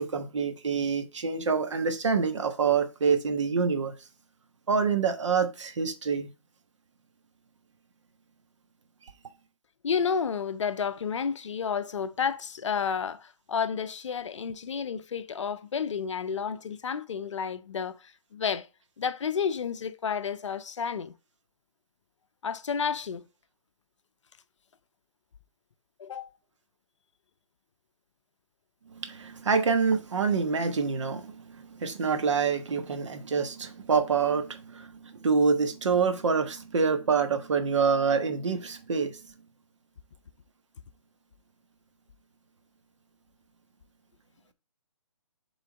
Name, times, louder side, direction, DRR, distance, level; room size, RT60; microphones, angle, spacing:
voice 1, 0.0-3.9 4.7-6.3 28.9-39.2, right 5 dB, 60° right, 1.3 m, -26 dB
voice 2, 9.8-18.7 19.0-21.1 22.4-23.2 26.0-26.3, left 6 dB, 60° left, 0.7 m, -31 dB
7.3 x 3.8 x 4.0 m
hypercardioid pair, 155°, 17 cm